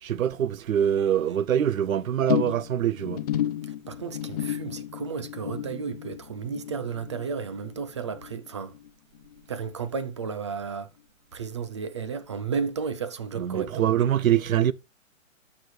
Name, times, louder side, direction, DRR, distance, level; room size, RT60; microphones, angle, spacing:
voice 1, 0.0-3.2 13.4-14.7, right 10 dB, 80° right, 0.7 m, -24 dB
sound 1, 2.3-8.9 9.1-9.6 9.9-10.0, left 12 dB, 30° left, 0.5 m, -33 dB
voice 2, 3.6-8.7 9.5-10.9 11.3-13.9, right 5 dB, 25° right, 0.4 m, -33 dB
12.5 x 5.0 x 3.2 m
hypercardioid pair, 145°, 40 cm